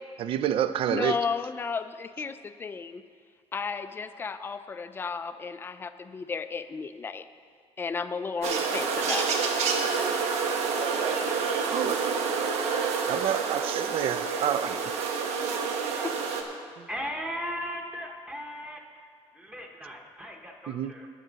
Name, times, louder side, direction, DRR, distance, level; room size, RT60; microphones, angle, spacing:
voice 1, 0.2-1.2 11.7-12.0 13.1-14.8 20.7-20.9, right 10 dB, 55° right, 13 dB, 0.4 m, -28 dB
voice 2, 0.9-3.0 3.5-7.2 7.8-9.4, left 5 dB, 20° left, 11 dB, 0.4 m, -33 dB
sound 1, 8.4-16.4, right 5 dB, 75° right, 1.1 m, -28 dB
voice 3, 16.9-18.8 19.3-21.1, equal, 10° right, 1 dB, 0.9 m, -37 dB
19.0 x 6.4 x 4.0 m, 2.1 s
cardioid pair, 170°, 11 cm